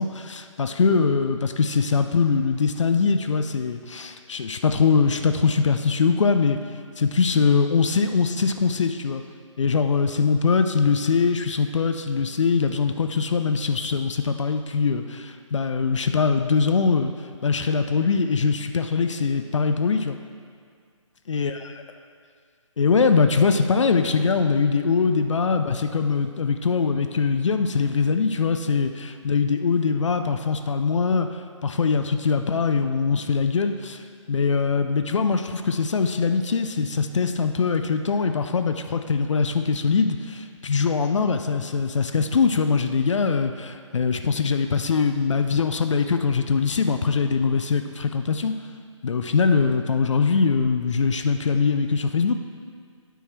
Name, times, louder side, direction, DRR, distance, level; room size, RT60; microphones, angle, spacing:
voice 1, 0.0-6.6 7.0-9.2 9.6-17.1 17.4-20.2 21.3-21.5 22.8-31.3 31.6-34.0 34.3-48.6 49.0-52.3, left 5 dB, 65° left, 7 dB, 0.5 m, -22 dB
9.0 x 4.7 x 4.5 m, 2.1 s
figure-of-eight pair, 150°, 17 cm